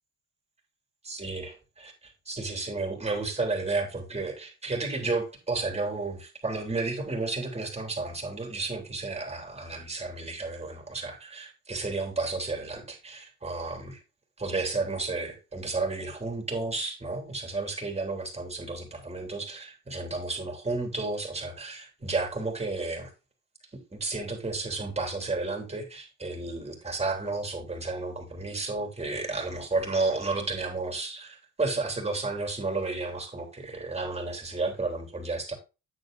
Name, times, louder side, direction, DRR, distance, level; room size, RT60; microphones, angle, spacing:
voice 1, 1.0-1.9 2.3-14.0 14.4-23.1 23.9-35.6, right 3 dB, 20° right, 3.3 m, -32 dB
9.5 x 8.0 x 2.6 m
cardioid pair, 90°, 30 cm